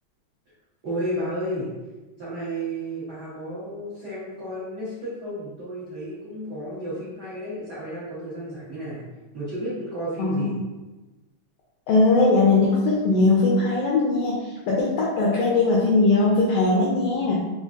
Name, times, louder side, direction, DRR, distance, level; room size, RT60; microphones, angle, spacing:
voice 1, 0.8-1.7 2.2-9.0 9.3-10.6, right 1 dB, 90° right, -11 dB, 0.9 m, -32 dB
voice 2, 11.9-14.4 14.7-17.4, left 3 dB, 80° left, -4 dB, 1.4 m, -20 dB
4.9 x 2.3 x 2.4 m, 1.1 s
omnidirectional pair, 3.3 m